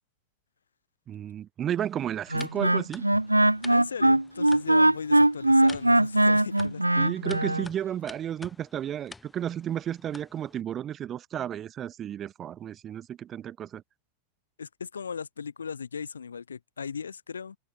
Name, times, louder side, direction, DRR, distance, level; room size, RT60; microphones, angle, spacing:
voice 1, 1.1-3.0 7.0-13.8, right 10 dB, 25° right, 0.8 m, -33 dB
sound 1, 1.8-10.6, left 3 dB, 10° left, 1.3 m, -50 dB
Wind instrument woodwind instrument, 2.3-7.7, right 1 dB, 85° right, 0.3 m, -21 dB
voice 2, 3.7-6.8 14.6-17.6, left 6 dB, 70° left, 0.6 m, -37 dB
open air
figure-of-eight pair, 90°, 0 cm